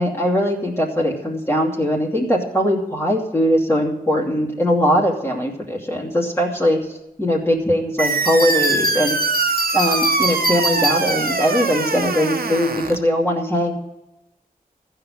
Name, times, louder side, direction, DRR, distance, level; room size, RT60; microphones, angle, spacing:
voice 1, 0.0-9.1 9.7-13.7, equal, 15° left, -3 dB, 2.7 m, -20 dB
sound 1, 8.0-13.0, right 4 dB, 75° right, 1.1 m, -22 dB
Bell, 8.3-11.6, equal, 70° left, 2.4 m, -25 dB
14.5 x 5.8 x 9.2 m, 0.92 s
wide cardioid pair, 60°, 15 cm